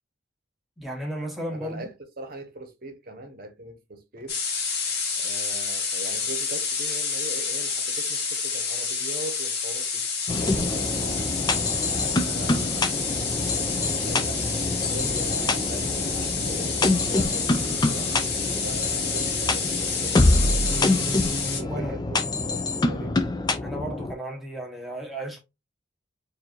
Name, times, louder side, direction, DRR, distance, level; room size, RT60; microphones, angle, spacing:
voice 1, 0.8-1.9 21.7-22.0 23.6-25.4, right 1 dB, ahead, 0.9 m, -34 dB
voice 2, 1.5-4.4 5.2-10.0 10.4-14.4 14.9-18.2 18.6-21.0 21.4-23.2, right 2 dB, 45° right, 0.9 m, -41 dB
sound 1, 4.3-21.6, left 5 dB, 50° left, 1.3 m, -29 dB
sound 2, 10.3-24.1, left 2 dB, 20° left, 0.3 m, -26 dB
4.5 x 2.6 x 2.9 m
head